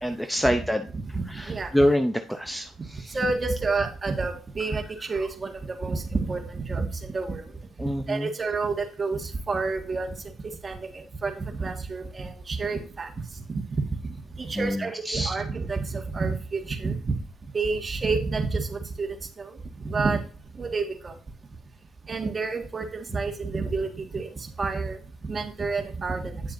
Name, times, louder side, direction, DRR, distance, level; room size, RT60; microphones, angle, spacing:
voice 1, 0.0-0.9 1.3-3.2 5.2-5.3 7.8-8.3 14.6-15.3, equal, 5° left, 7 dB, 0.6 m, -26 dB
voice 2, 0.9-1.7 3.1-7.4 8.1-10.1 10.6-13.1 13.5-13.8 14.4-17.1 17.5-19.1 19.4-19.5 19.8-20.2 20.6-21.1 22.1-25.0 25.3-26.4, right 4 dB, 30° right, 5 dB, 1.6 m, -29 dB
9.0 x 7.2 x 2.6 m, 0.41 s
cardioid pair, 90°, 0 cm